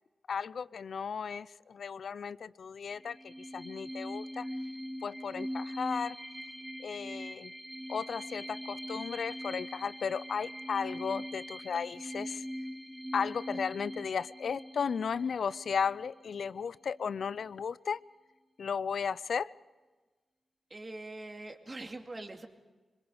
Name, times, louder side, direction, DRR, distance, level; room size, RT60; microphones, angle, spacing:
voice 1, 0.3-4.5 5.0-6.2 6.8-7.5 7.9-12.4 13.1-18.0 18.6-19.5, left 6 dB, 75° left, 0.6 m, -35 dB
sound 1, 3.0-16.3, equal, 5° right, 3.1 m, -42 dB
voice 2, 20.7-22.5, right 2 dB, 30° right, 2.6 m, -43 dB
25.5 x 22.5 x 5.2 m
cardioid pair, 80°, 0 cm